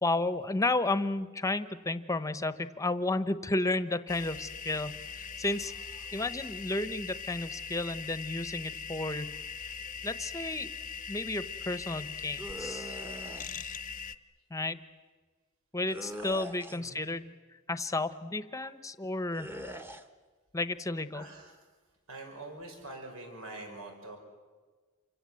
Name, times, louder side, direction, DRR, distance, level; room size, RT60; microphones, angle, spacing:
voice 1, 0.0-5.7 6.1-9.4 10.0-10.7 11.1-13.0 14.5-14.8 15.7-17.3 17.7-19.5 20.5-21.3, left 2 dB, 15° left, 12 dB, 1.0 m, -32 dB
sound 1, 4.1-14.2, left 6 dB, 40° left, 0.8 m, -41 dB
sound 2, 12.4-13.5 15.9-16.9 19.3-20.0, equal, 10° right, 1.2 m, -42 dB
voice 2, 21.1-21.5 22.1-24.2, right 2 dB, 80° right, 3 dB, 5.7 m, -45 dB
28.5 x 25.0 x 7.8 m, 1.4 s
head